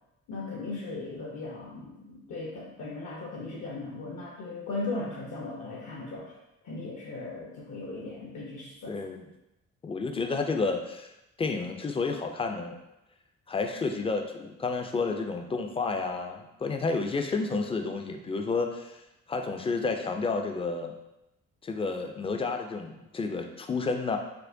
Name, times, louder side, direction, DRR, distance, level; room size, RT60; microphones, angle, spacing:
voice 1, 0.3-6.3 6.6-9.0, left 2 dB, 65° left, -3 dB, 0.7 m, -37 dB
voice 2, 8.9-9.3 9.8-11.1 11.4-12.8 13.5-19.0 19.3-20.9 21.6-24.2, left 4 dB, 20° left, 5 dB, 0.3 m, -30 dB
4.4 x 2.1 x 2.6 m, 0.91 s
cardioid pair, 90°, 30 cm